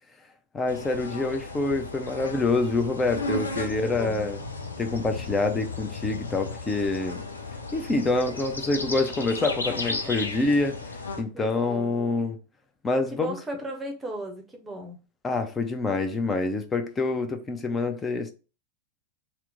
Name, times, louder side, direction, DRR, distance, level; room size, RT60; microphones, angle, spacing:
voice 1, 0.5-4.4 4.8-7.2 7.7-10.8 11.2-12.4 12.8-13.4 15.2-18.3, left 3 dB, 15° left, 0.5 m, -26 dB
sound 1, 0.7-11.2, left 3 dB, 75° left, 0.4 m, -35 dB
voice 2, 3.4-4.3 9.7-10.2 11.3-12.1 13.1-15.0, right 1 dB, 15° right, 0.8 m, -37 dB
2.9 x 2.1 x 3.7 m
figure-of-eight pair, 90°, 0 cm